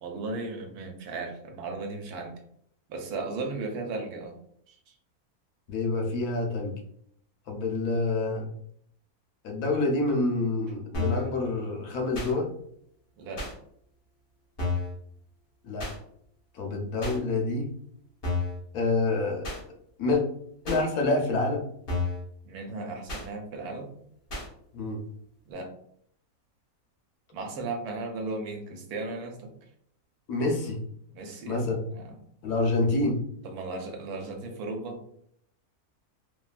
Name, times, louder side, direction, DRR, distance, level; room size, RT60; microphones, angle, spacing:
voice 1, 0.0-2.4 2.9-4.4 4.7-4.9 13.1-13.5 22.4-23.9 25.5-25.7 27.3-29.5 31.1-32.2 33.4-35.0, right 3 dB, 85° right, 3 dB, 1.2 m, -36 dB
voice 2, 5.7-6.7 7.5-8.5 9.4-12.5 15.6-15.9 16.5-17.7 18.7-19.5 20.0-20.2 20.6-21.6 24.7-25.0 30.3-30.8 31.4-31.9 32.4-33.2, left 2 dB, 85° left, 1 dB, 1.2 m, -27 dB
sound 1, 10.9-11.3 12.1-12.3 13.4-13.5 14.6-14.9 15.8-16.0 17.0-17.2 18.2-18.6 19.4-19.6 20.7-20.8 21.9-22.2 23.1-23.3 24.3-24.5, left 3 dB, 45° left, 0.9 m, -30 dB
3.1 x 2.3 x 2.4 m, 0.67 s
omnidirectional pair, 1.6 m